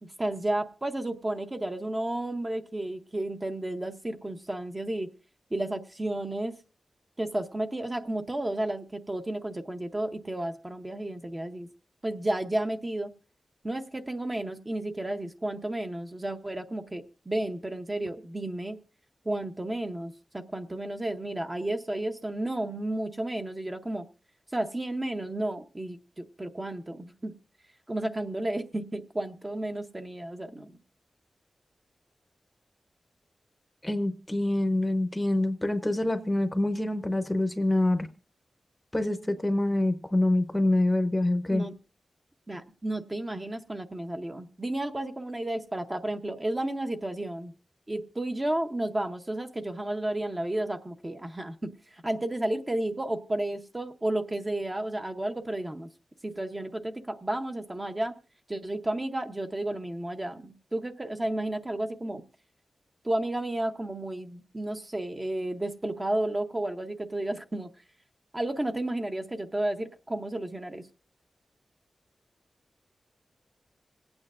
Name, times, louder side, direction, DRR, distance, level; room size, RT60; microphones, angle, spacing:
voice 1, 0.0-5.1 5.5-6.6 7.2-11.7 12.0-13.1 13.6-18.8 19.2-24.1 24.5-27.3 27.9-30.7 41.5-41.7 42.5-47.5 47.9-55.9 56.2-58.2 58.5-62.2 63.0-67.7 68.3-70.9, right 1 dB, 20° right, 5 dB, 0.7 m, -32 dB
voice 2, 33.8-38.1 38.9-41.6, left 1 dB, 15° left, 10 dB, 0.7 m, -26 dB
26.0 x 8.8 x 2.4 m, 0.34 s
wide cardioid pair, 110°, 0 cm